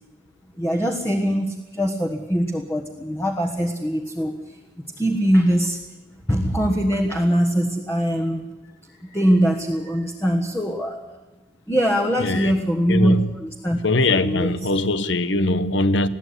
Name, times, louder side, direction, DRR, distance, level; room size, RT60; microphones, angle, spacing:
voice 1, 0.6-5.8 6.3-8.4 9.0-11.0 11.7-13.1 13.4-13.8 14.2-14.7, equal, 15° left, 1.5 m, -22 dB
voice 2, 12.2-12.6 12.9-13.3 13.8-16.1, left 2 dB, 60° left, 1.0 m, -21 dB
21.5 x 15.0 x 9.8 m
head